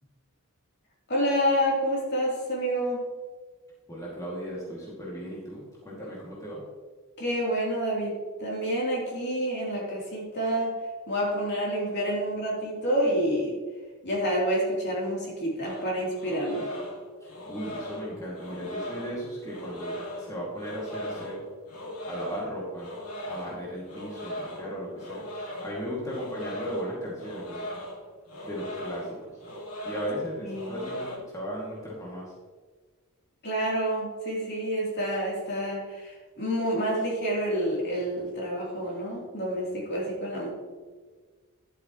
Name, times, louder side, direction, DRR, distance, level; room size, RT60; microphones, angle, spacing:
voice 1, 1.1-3.0 7.2-10.7 11.1-13.6 14.0-16.7 30.4-30.9 33.4-40.5, equal, 50° left, -4 dB, 3.1 m, -28 dB
voice 2, 3.9-6.6 17.2-21.5 22.1-25.2 25.6-27.6 28.5-29.3 29.8-32.3, equal, 15° left, -6 dB, 2.1 m, -36 dB
sound 1, 15.6-31.2, equal, 80° left, 2.0 m, -39 dB
11.5 x 8.0 x 3.0 m, 1.4 s
head